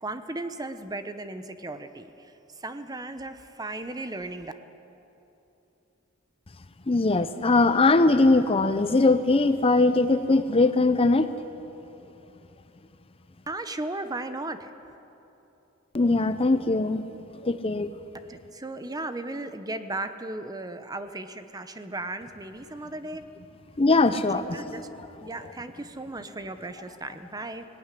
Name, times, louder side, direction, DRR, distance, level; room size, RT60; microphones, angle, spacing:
voice 1, 0.0-4.5 13.5-14.7 18.3-23.2 24.1-24.9 25.2-27.7, right 2 dB, 20° right, 10 dB, 0.9 m, -36 dB
voice 2, 6.9-11.3 15.9-17.0 17.4-17.9 23.8-24.8, left 3 dB, 30° left, 11 dB, 0.6 m, -21 dB
18.5 x 18.0 x 10.0 m, 2.9 s
head